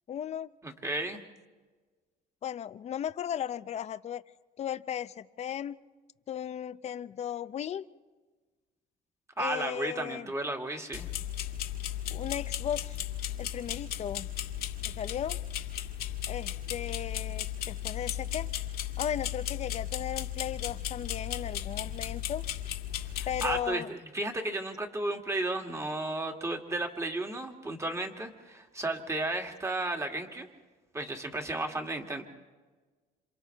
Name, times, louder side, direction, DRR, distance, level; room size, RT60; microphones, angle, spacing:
voice 1, 0.1-0.5 2.4-4.2 4.6-5.8 6.3-7.8 9.4-10.3 12.1-13.0 13.4-14.3 14.9-15.4 16.3-18.5 19.0-22.4 23.3-23.9, left 9 dB, 40° left, 14 dB, 0.6 m, -36 dB
voice 2, 0.6-1.2 9.4-11.1 23.2-30.5 30.9-32.2, right 2 dB, 15° right, 3 dB, 2.1 m, -33 dB
sound 1, 10.9-23.6, left 11 dB, 70° left, 1.7 m, -35 dB
28.0 x 27.0 x 3.4 m, 1.3 s
cardioid pair, 110°, 17 cm